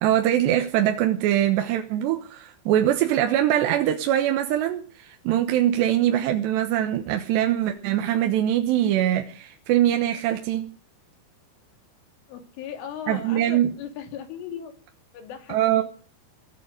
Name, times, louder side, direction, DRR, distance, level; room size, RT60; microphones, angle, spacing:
voice 1, 0.0-10.7 13.1-13.7 15.5-15.8, right 12 dB, 70° right, 5 dB, 3.0 m, -23 dB
voice 2, 12.3-14.7 15.1-15.8, left 8 dB, 75° left, 5 dB, 5.1 m, -37 dB
20.0 x 8.6 x 6.5 m, 0.40 s
omnidirectional pair, 5.7 m